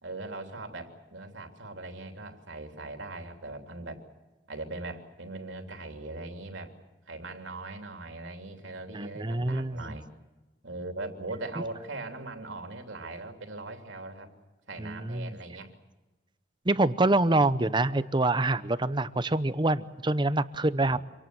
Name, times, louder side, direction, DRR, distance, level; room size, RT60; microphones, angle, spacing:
voice 1, 0.0-4.0 4.5-6.8 7.1-10.1 10.6-14.3 14.7-15.8 20.8-21.0, right 2 dB, 80° right, 4 dB, 3.2 m, -40 dB
voice 2, 8.9-9.9 14.8-15.4 16.7-21.0, right 2 dB, 25° right, 14 dB, 0.8 m, -26 dB
26.5 x 18.5 x 7.7 m, 1.2 s
head